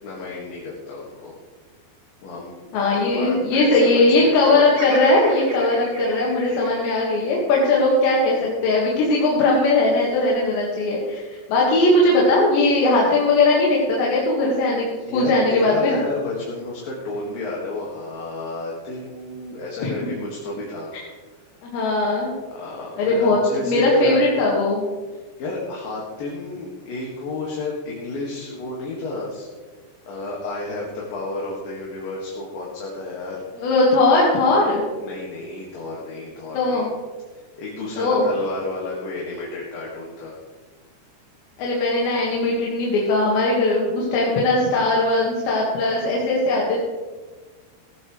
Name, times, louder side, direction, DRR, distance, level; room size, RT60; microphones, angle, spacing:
voice 1, 0.0-1.4 2.2-4.6 6.5-6.7 15.1-20.9 22.5-24.2 25.1-29.5 30.1-33.4 35.0-36.9 37.3-40.3, left 2 dB, 60° left, -4 dB, 3.5 m, -31 dB
voice 2, 2.7-14.9 15.1-16.0 19.8-19.9 21.6-22.3 23.0-24.8 33.6-34.8 36.5-36.9 38.0-38.3 41.6-46.8, left 2 dB, 85° left, -4 dB, 4.1 m, -19 dB
Bird vocalization bird call bird song, 4.7-9.0 9.5-10.3, right 1 dB, 45° right, 0.7 m, -38 dB
15.5 x 15.5 x 3.3 m, 1.4 s
omnidirectional pair, 4.9 m